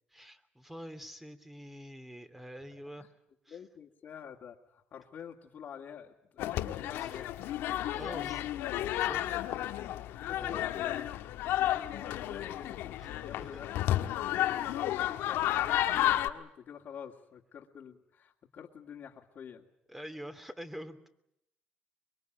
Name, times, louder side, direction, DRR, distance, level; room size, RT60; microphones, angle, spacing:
voice 1, 0.1-3.1 3.5-3.6 7.0-7.2 7.8-9.3 10.3-10.7 13.0-13.1 13.4-13.6 19.9-21.1, equal, 5° right, 9 dB, 2.7 m, -46 dB
voice 2, 3.5-8.3 10.3-14.1 14.3-19.7, left 8 dB, 50° left, -2 dB, 2.4 m, -48 dB
sound 1, 6.4-16.3, left 13 dB, 80° left, 1.5 m, -32 dB
24.0 x 22.5 x 9.3 m, 0.79 s
cardioid pair, 90°, 4 cm